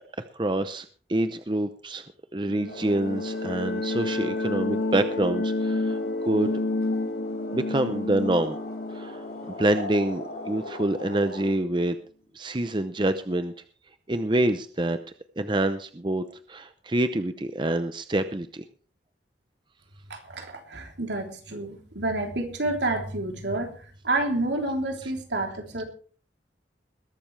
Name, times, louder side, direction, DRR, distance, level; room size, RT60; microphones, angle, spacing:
voice 1, 0.2-2.0 2.3-6.5 7.5-8.6 8.9-9.3 9.5-12.0 12.3-13.5 14.1-15.0 15.4-18.6, right 1 dB, 25° right, 10 dB, 0.7 m, -26 dB
sound 1, 2.5-11.0, left 2 dB, 80° left, 2.3 m, -30 dB
sound 2, 2.7-11.5, left 2 dB, 60° left, 3.9 m, -41 dB
voice 2, 20.1-23.7 24.0-25.8, right 2 dB, 75° right, 3 dB, 3.4 m, -29 dB
21.0 x 12.0 x 3.3 m, 0.42 s
head